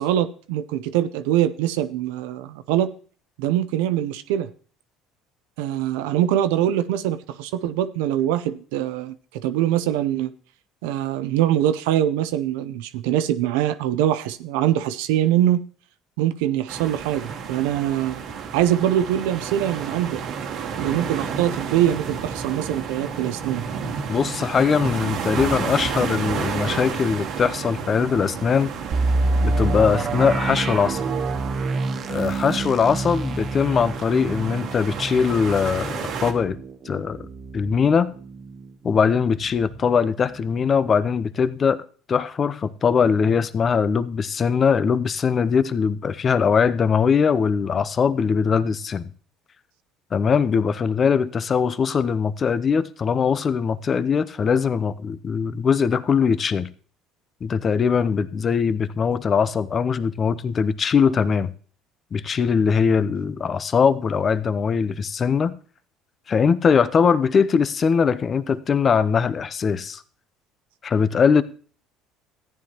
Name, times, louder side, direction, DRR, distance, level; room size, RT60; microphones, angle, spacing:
voice 1, 0.0-2.9 3.4-4.5 5.6-10.3 10.8-15.6 16.2-18.2 18.5-20.2 20.8-23.7, right 12 dB, 85° right, 0.6 m, -23 dB
sound 1, 16.7-36.3, right 6 dB, 65° right, 1.4 m, -31 dB
voice 2, 24.1-28.7 29.4-31.0 32.1-36.6 36.9-37.3 37.5-38.1 38.8-41.8 42.1-49.1 50.1-56.7 57.4-61.5 62.1-65.5 66.3-70.0 70.8-71.4, left 6 dB, 40° left, 0.6 m, -21 dB
sound 2, 28.9-38.6 39.0-39.1 39.6-39.8, right 3 dB, 45° right, 0.8 m, -27 dB
14.0 x 9.6 x 2.9 m
supercardioid pair, 80°, 0 cm